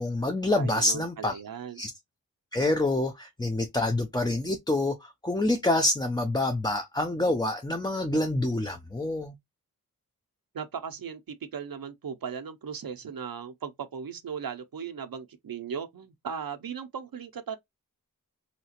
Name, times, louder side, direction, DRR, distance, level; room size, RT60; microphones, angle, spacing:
voice 1, 0.0-1.4 1.8-1.9 2.5-9.3, left 2 dB, 10° left, 0.4 m, -27 dB
voice 2, 0.5-1.8 10.5-17.6, right 7 dB, 75° right, 0.5 m, -37 dB
3.2 x 2.8 x 2.8 m
wide cardioid pair, 65°, 35 cm